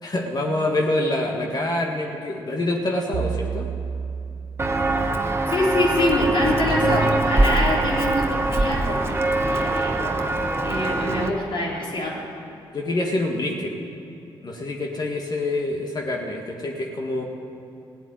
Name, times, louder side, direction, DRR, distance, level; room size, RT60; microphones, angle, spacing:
voice 1, 0.0-3.7 9.9-10.2 12.7-13.8 14.4-17.2, left 1 dB, 45° left, 0 dB, 1.8 m, -26 dB
sound 1, 3.1-5.6, right 7 dB, 70° right, 0.4 m, -31 dB
Walk footsteps, 4.6-11.3, right 2 dB, 25° right, 1.2 m, -23 dB
voice 2, 5.5-9.2 9.4-10.0 10.6-12.2, left 1 dB, 60° left, -3 dB, 3.6 m, -24 dB
16.5 x 7.9 x 9.3 m, 2.6 s
supercardioid pair, 60°, 10 cm